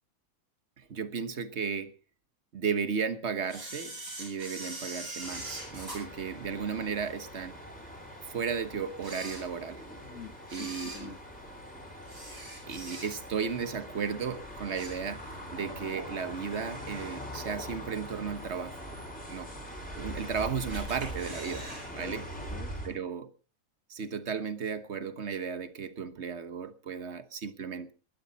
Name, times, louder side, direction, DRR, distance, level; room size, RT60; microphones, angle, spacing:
voice 1, 0.8-1.9 2.5-3.9 4.2-7.6 8.3-9.8 10.5-11.1 12.7-18.8 19.3-19.5 20.0-22.2 22.8-23.3 23.9-27.9, right 6 dB, 50° right, 1.4 m, -34 dB
Camera, 3.5-7.1 7.6-7.7 8.4-8.5 8.9-9.9 10.4-13.4 13.8-14.1 14.4-15.5 15.8-15.9 16.9-17.0 17.5-17.9 18.4-18.5 18.6-18.7 18.9-19.0 19.8-20.3 20.7-21.9 22.1-22.2 22.5-22.6, right 1 dB, 85° right, 7.5 m, -43 dB
sound 1, 5.2-22.9, equal, 5° left, 4.8 m, -43 dB
voice 2, 10.0-11.2 22.0-23.0, left 5 dB, 65° left, 2.3 m, -47 dB
20.5 x 12.0 x 4.1 m
omnidirectional pair, 1.5 m